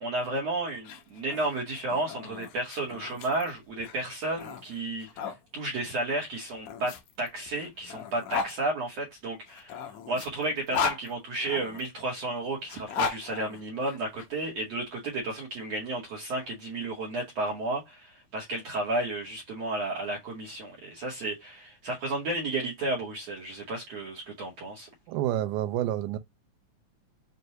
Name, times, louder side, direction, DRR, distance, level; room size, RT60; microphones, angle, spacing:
voice 1, 0.0-9.8 10.1-24.9, right 2 dB, 65° right, 1.8 m, -32 dB
sound 1, 0.7-5.4 6.3-8.5 9.5-11.8 12.6-14.3, left 5 dB, 80° left, 1.6 m, -36 dB
voice 2, 25.1-26.2, right 12 dB, 80° right, 1.8 m, -28 dB
6.4 x 2.2 x 2.7 m
omnidirectional pair, 3.9 m